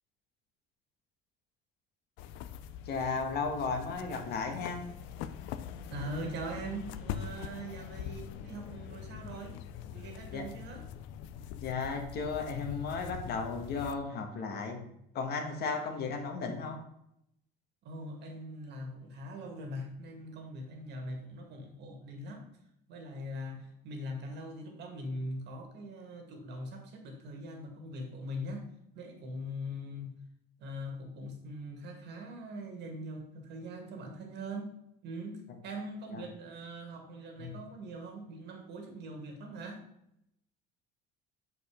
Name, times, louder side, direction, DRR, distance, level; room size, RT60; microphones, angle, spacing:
sound 1, 2.2-13.9, left 9 dB, 85° left, 0.6 m, -43 dB
voice 1, 2.8-4.8 10.3-10.4 11.6-14.8 15.1-16.8 36.1-36.2 37.4-37.5, left 4 dB, 55° left, 4 dB, 1.6 m, -34 dB
voice 2, 5.9-9.6 9.9-10.9 17.8-22.5 22.9-30.1 30.6-34.7 35.0-39.8, equal, 65° right, 3 dB, 2.1 m, -42 dB
6.8 x 5.3 x 5.1 m, 0.77 s
cardioid pair, 130°, 19 cm